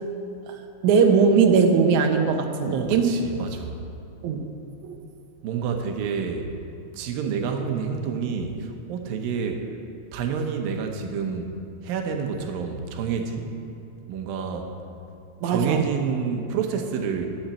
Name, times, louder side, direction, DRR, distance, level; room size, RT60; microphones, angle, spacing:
voice 1, 0.8-3.1 4.2-4.4 4.8-5.0 14.5-14.6 15.4-15.9, right 5 dB, 70° right, 4 dB, 2.1 m, -20 dB
voice 2, 2.7-3.8 5.4-6.5 6.9-9.8 10.1-11.5 11.8-13.5 14.1-14.7 15.5-17.3, right 6 dB, 85° right, 4 dB, 2.7 m, -28 dB
12.0 x 7.2 x 8.2 m, 2.6 s
omnidirectional pair, 4.0 m